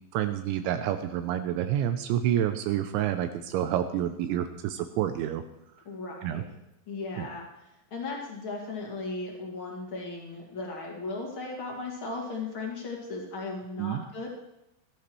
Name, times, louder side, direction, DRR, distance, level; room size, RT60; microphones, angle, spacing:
voice 1, 0.1-5.4 6.2-6.4 7.2-7.3 13.8-14.0, right 11 dB, 80° right, 8 dB, 2.8 m, -28 dB
voice 2, 5.8-6.4 6.9-7.5 7.9-14.3, left 3 dB, 45° left, -2 dB, 1.8 m, -36 dB
16.5 x 12.0 x 3.1 m, 0.89 s
omnidirectional pair, 5.5 m